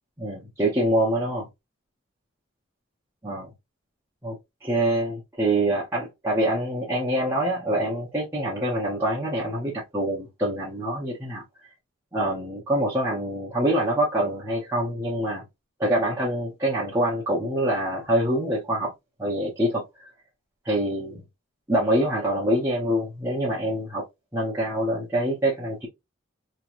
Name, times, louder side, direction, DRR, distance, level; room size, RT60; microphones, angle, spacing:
voice 1, 0.2-1.5 3.2-3.5 4.2-4.4 4.6-11.4 12.1-15.4 15.8-18.9 19.2-20.1 20.6-21.2 21.7-24.0 24.3-25.9, right 1 dB, 10° right, 0.8 m, -25 dB
3.0 x 2.9 x 2.5 m
head